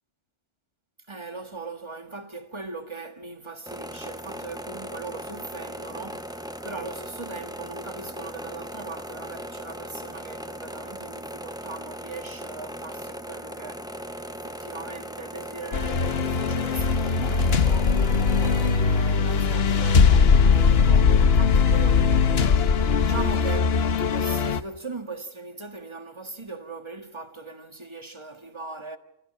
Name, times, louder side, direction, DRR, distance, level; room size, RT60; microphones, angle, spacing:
voice 1, 1.1-29.0, right 3 dB, 25° right, 1.6 m, -39 dB
sound 1, 3.7-18.7, equal, 5° right, 0.7 m, -38 dB
sound 2, 15.7-24.6, left 5 dB, 60° left, 1.2 m, -20 dB
28.5 x 16.5 x 6.6 m
omnidirectional pair, 1.2 m